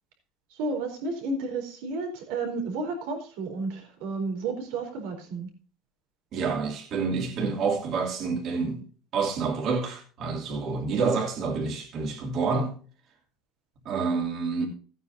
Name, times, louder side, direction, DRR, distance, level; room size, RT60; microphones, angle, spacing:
voice 1, 0.5-5.5, right 3 dB, 85° right, 4.1 m, -32 dB
voice 2, 6.3-8.8 9.1-12.8 13.8-14.7, right 4 dB, 45° right, 3.0 m, -28 dB
16.5 x 9.3 x 2.7 m
cardioid pair, 155°, 0 cm